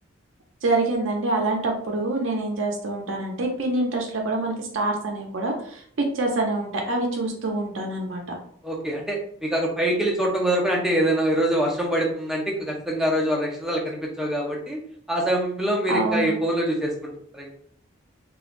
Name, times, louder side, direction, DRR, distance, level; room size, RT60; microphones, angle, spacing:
voice 1, 0.6-8.4 15.9-16.3, right 2 dB, 70° right, 1 dB, 0.5 m, -26 dB
voice 2, 8.6-14.8 15.1-17.5, right 1 dB, ahead, -2 dB, 0.5 m, -24 dB
3.0 x 2.3 x 2.4 m, 0.62 s
head